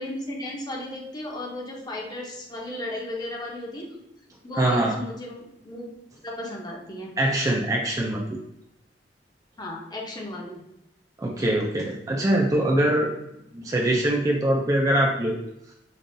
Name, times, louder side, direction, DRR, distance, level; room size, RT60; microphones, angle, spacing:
voice 1, 0.0-4.0 4.4-5.9 6.2-7.1 9.6-10.6, left 1 dB, 25° left, -1 dB, 0.8 m, -35 dB
voice 2, 4.6-5.0 7.2-8.4 11.2-13.1 13.5-15.4, right 1 dB, 20° right, -1 dB, 0.4 m, -23 dB
5.3 x 2.4 x 2.6 m, 0.82 s
head